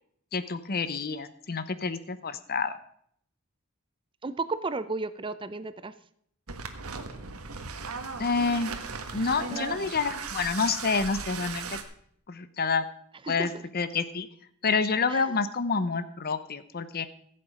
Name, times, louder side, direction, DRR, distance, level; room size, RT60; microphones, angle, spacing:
voice 1, 0.3-2.8 8.2-8.7 9.1-11.8 12.3-12.8 13.3-14.3 14.6-17.1, left 4 dB, 45° left, 13 dB, 0.8 m, -28 dB
voice 2, 4.2-5.9 9.1-9.8 13.2-13.6 15.1-15.4, right 3 dB, 25° right, 13 dB, 0.5 m, -34 dB
sound 1, 6.5-11.8, right 4 dB, 85° right, 1.4 m, -37 dB
15.5 x 7.8 x 5.0 m, 0.66 s
head